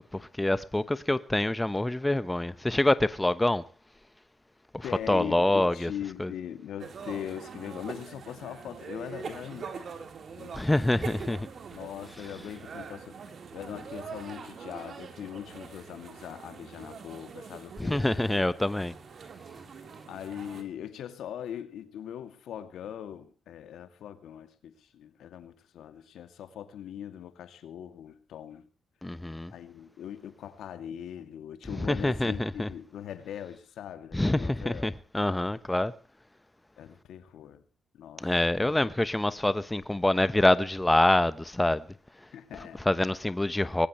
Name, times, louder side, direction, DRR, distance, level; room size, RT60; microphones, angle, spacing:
voice 1, 0.1-3.6 4.7-5.9 6.2-6.3 10.5-11.5 17.8-18.9 29.0-29.5 31.8-32.7 34.1-35.9 38.2-41.9 42.8-43.9, left 1 dB, 10° left, 1.1 m, -26 dB
voice 2, 4.8-10.1 10.3-10.6 11.0-11.1 11.7-13.2 13.5-18.1 20.1-28.7 29.5-34.9 36.8-37.6 37.9-38.2 38.5-38.9 42.3-42.8, left 10 dB, 85° left, 2.4 m, -41 dB
sound 1, 6.8-20.6, right 5 dB, 60° right, 3.9 m, -43 dB
20.5 x 19.0 x 3.2 m
cardioid pair, 80°, 0 cm